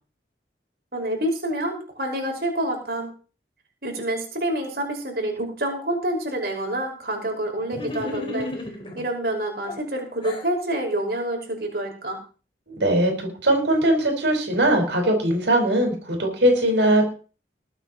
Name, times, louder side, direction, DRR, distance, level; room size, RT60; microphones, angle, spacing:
voice 1, 0.9-3.1 3.8-8.5 9.0-12.2, right 1 dB, 60° right, 1 dB, 5.5 m, -27 dB
sound 1, 7.7-9.0 9.7-10.5, left 2 dB, 30° left, 3.9 m, -33 dB
voice 2, 12.7-17.0, right 1 dB, 85° right, 2 dB, 5.1 m, -20 dB
21.5 x 8.9 x 4.2 m, 0.36 s
head